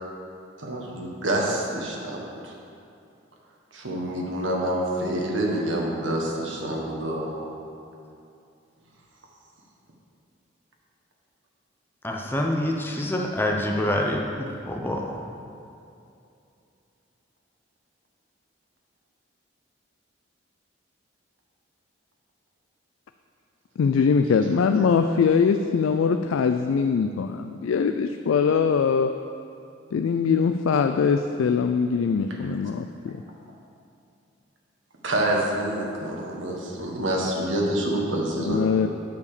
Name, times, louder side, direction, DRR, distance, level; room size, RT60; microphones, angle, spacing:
voice 1, 0.6-2.5 3.7-7.5 35.0-38.6, right 1 dB, 75° right, -2 dB, 1.5 m, -27 dB
voice 2, 12.0-15.2, left 1 dB, 10° left, 0 dB, 0.7 m, -26 dB
voice 3, 23.8-29.1 29.9-33.2 38.4-38.9, left 6 dB, 85° left, 7 dB, 0.3 m, -22 dB
8.2 x 4.9 x 6.7 m, 2.6 s
head